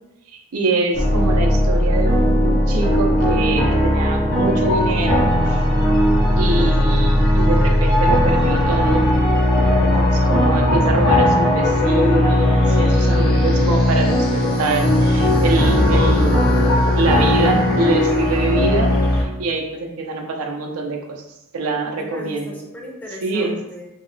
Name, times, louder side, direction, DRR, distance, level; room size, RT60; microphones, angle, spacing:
voice 1, 0.3-5.6 6.4-9.1 9.8-16.6 17.0-18.9 19.2-21.2 21.5-22.6 23.2-23.6, right 3 dB, 85° right, 1 dB, 0.5 m, -24 dB
sound 1, 0.9-19.2, left 1 dB, 45° left, 0.7 m, -17 dB
voice 2, 22.0-24.0, left 1 dB, 10° left, -2 dB, 0.5 m, -37 dB
2.8 x 2.8 x 2.6 m, 0.92 s
head